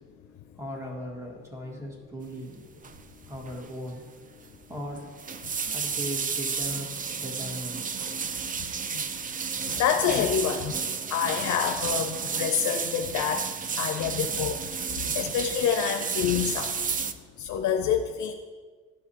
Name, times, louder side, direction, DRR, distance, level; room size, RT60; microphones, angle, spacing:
voice 1, 0.6-2.6 3.2-4.1 4.7-5.1 5.7-7.9, equal, 10° right, -1 dB, 1.8 m, -38 dB
sound 1, 2.8-3.1 3.3-3.7 3.9-4.0 5.0-17.1, right 6 dB, 30° right, 0.4 m, -32 dB
voice 2, 9.8-10.7 11.1-13.5 13.8-16.8 17.4-18.3, left 8 dB, 70° left, 5 dB, 0.6 m, -27 dB
12.5 x 4.7 x 2.9 m, 1.5 s
cardioid pair, 90°, 30 cm